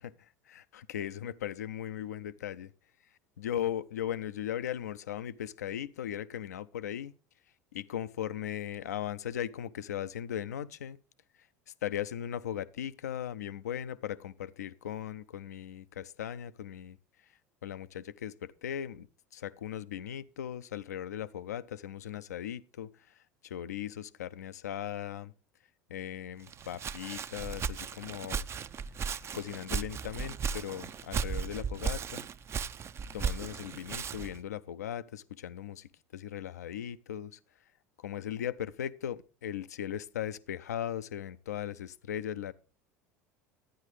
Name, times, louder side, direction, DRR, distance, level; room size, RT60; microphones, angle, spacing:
voice 1, 0.5-2.7 3.4-7.1 7.7-11.0 11.8-17.0 17.6-19.1 19.3-22.9 23.4-25.3 25.9-28.5 29.3-32.2 33.1-37.4 38.0-42.5, left 10 dB, 80° left, 0.4 m, -38 dB
Walk footsteps, 26.5-34.4, right 6 dB, 30° right, 0.4 m, -36 dB
11.5 x 9.7 x 3.1 m
hypercardioid pair, 75°, 9 cm